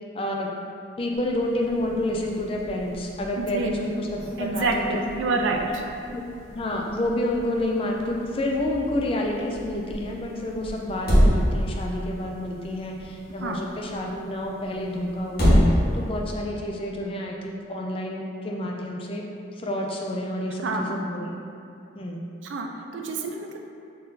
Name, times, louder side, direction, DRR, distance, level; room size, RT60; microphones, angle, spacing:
voice 1, 0.1-0.5 1.0-4.1 4.4-5.4 6.1-6.2 6.5-19.2 19.5-21.3 22.0-22.2, left 1 dB, 30° left, -1 dB, 0.3 m, -29 dB
sound 1, 1.1-16.4, equal, 50° left, 1.1 m, -28 dB
voice 2, 3.4-3.7 4.4-5.8 13.4-13.6 20.6-21.0 22.4-23.6, right 3 dB, 75° right, 2 dB, 0.4 m, -27 dB
3.9 x 2.6 x 3.8 m, 2.5 s
head